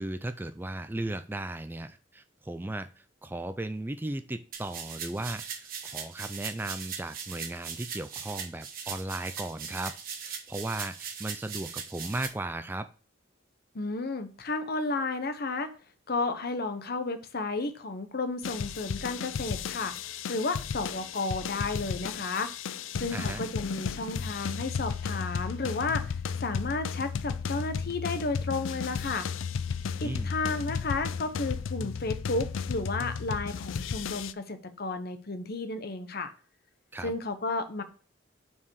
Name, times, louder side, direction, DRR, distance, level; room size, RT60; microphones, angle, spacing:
voice 1, 0.0-9.9 10.2-12.9 23.1-23.4 30.0-30.3 36.9-37.1, right 2 dB, 10° right, 10 dB, 0.3 m, -36 dB
sound 1, 4.5-12.3, right 7 dB, 50° right, 1.3 m, -40 dB
voice 2, 13.7-15.7 16.1-19.9 20.3-22.5 23.0-26.1 26.4-29.3 30.0-36.3 37.0-37.8, left 3 dB, 55° left, 9 dB, 0.9 m, -32 dB
sound 2, 18.4-34.3, left 6 dB, 85° left, 0.4 m, -34 dB
5.9 x 4.7 x 6.3 m, 0.39 s
head